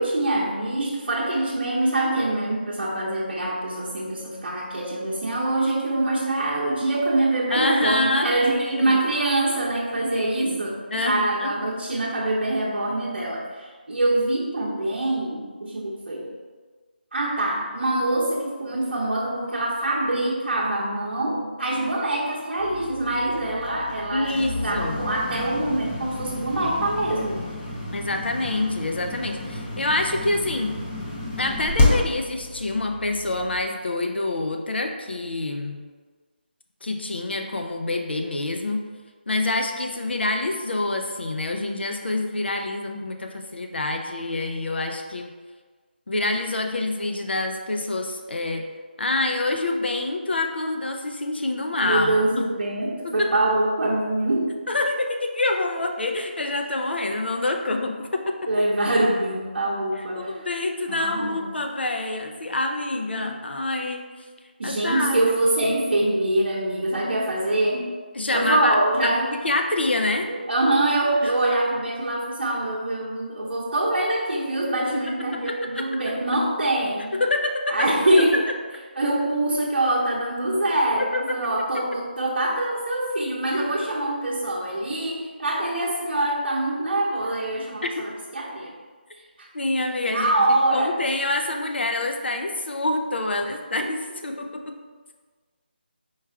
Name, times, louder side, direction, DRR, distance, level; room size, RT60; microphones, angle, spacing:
voice 1, 0.0-16.3 17.1-27.4 51.8-54.5 58.5-60.4 60.9-61.4 63.1-63.3 64.6-67.9 68.3-69.3 70.3-77.2 77.7-78.5 79.0-88.7 89.4-89.5 90.1-90.9 93.4-93.5 93.8-93.9, right 1 dB, 65° right, -6 dB, 0.8 m, -24 dB
voice 2, 7.5-9.0 10.1-10.6 10.9-11.5 24.1-25.0 27.9-30.7 31.4-35.8 36.8-38.8 39.3-45.3 46.1-48.6 49.0-52.4 53.0-53.3 54.7-58.5 60.2-64.0 64.6-65.3 68.1-68.8 69.0-70.3 71.2-71.3 75.5-75.8 77.1-77.9 81.0-81.4 87.8-87.9 89.5-94.7, left 2 dB, 80° left, 4 dB, 0.6 m, -26 dB
sound 1, 22.6-33.6, left 2 dB, 15° left, 0.5 m, -29 dB
4.6 x 2.4 x 4.5 m, 1.4 s
figure-of-eight pair, 165°, 6 cm